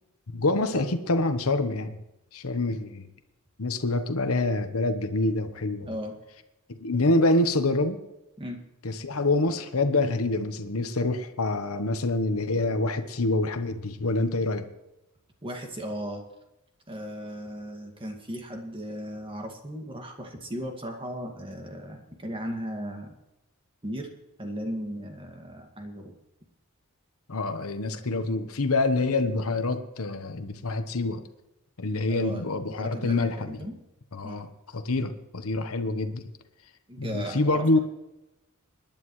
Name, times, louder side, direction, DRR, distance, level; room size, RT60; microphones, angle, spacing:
voice 1, 0.3-2.0 2.3-3.0 3.6-5.9 6.8-8.0 8.8-14.7 27.3-31.2 31.8-33.6 34.1-36.3 37.0-37.8, left 2 dB, 70° left, 8 dB, 1.1 m, -26 dB
voice 2, 5.8-6.2 8.4-8.6 10.0-10.2 15.4-16.2 16.9-23.1 23.8-24.1 24.4-26.2 27.8-28.3 32.1-32.5 32.8-33.8 34.2-34.4 36.9-37.8, equal, 25° right, 3 dB, 2.0 m, -36 dB
25.0 x 10.5 x 3.2 m, 0.94 s
head